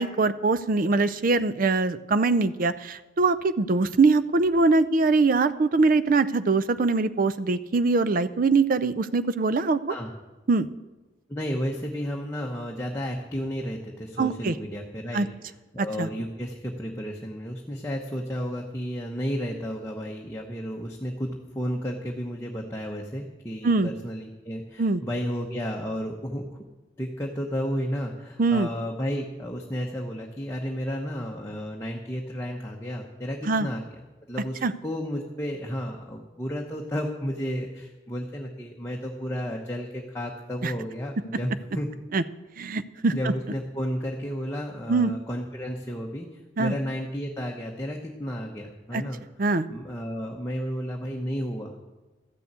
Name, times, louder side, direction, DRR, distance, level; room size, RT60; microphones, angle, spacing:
voice 1, 0.0-10.0 10.5-10.7 14.2-14.5 15.1-15.3 15.8-16.1 23.6-23.9 24.8-25.0 28.4-28.7 33.4-33.7 34.6-34.7 40.6-40.7 42.1-42.2 42.6-43.3 44.9-45.1 46.6-46.7 48.9-49.0 49.4-49.7, right 3 dB, 45° right, 14 dB, 0.5 m, -23 dB
voice 2, 11.3-15.3 15.7-26.4 27.0-33.9 34.3-41.9 43.1-46.3 46.6-49.2 49.7-51.9, equal, 15° left, -1 dB, 0.9 m, -32 dB
13.5 x 6.9 x 8.1 m, 1.2 s
head